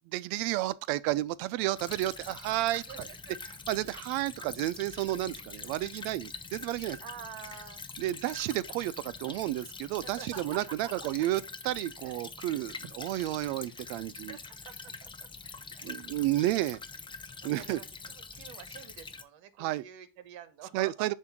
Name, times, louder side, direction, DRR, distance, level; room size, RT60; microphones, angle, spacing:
voice 1, 0.1-2.8 3.7-7.0 8.0-14.4 15.8-16.8 17.4-17.8 19.6-19.8 20.7-21.1, right 16 dB, 90° right, 0.6 m, -31 dB
Stream / Trickle dribble, 1.8-19.2, left 4 dB, 10° left, 0.4 m, -45 dB
voice 2, 2.7-3.3 7.0-7.8 10.0-11.3 12.0-12.1 12.5-12.6 13.2-13.3 14.3-15.3 15.7-15.9 17.4-21.1, right 8 dB, 65° right, 1.2 m, -48 dB
7.4 x 2.7 x 5.9 m
supercardioid pair, 110°, 50 cm